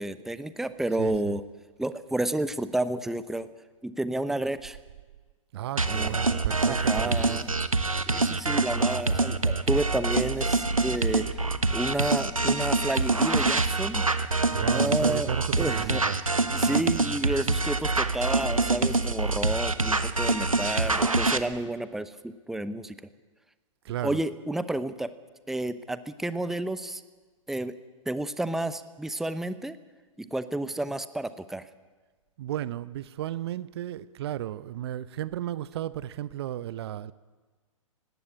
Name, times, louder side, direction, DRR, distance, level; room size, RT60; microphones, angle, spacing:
voice 1, 0.0-1.4 1.8-3.5 3.8-4.8 5.9-6.1 6.6-7.5 8.1-14.0 14.7-15.3 15.6-16.0 16.5-23.0 24.0-25.1 25.5-27.0 27.5-27.7 28.1-29.8 30.2-31.7, right 1 dB, ahead, 0.8 m, -31 dB
voice 2, 1.0-1.4 5.5-7.5 14.5-16.2 23.8-24.2 32.4-37.1, right 12 dB, 50° right, 0.7 m, -33 dB
sound 1, 5.8-21.4, right 3 dB, 90° right, 1.2 m, -25 dB
18.5 x 16.5 x 9.8 m
figure-of-eight pair, 110°, 17 cm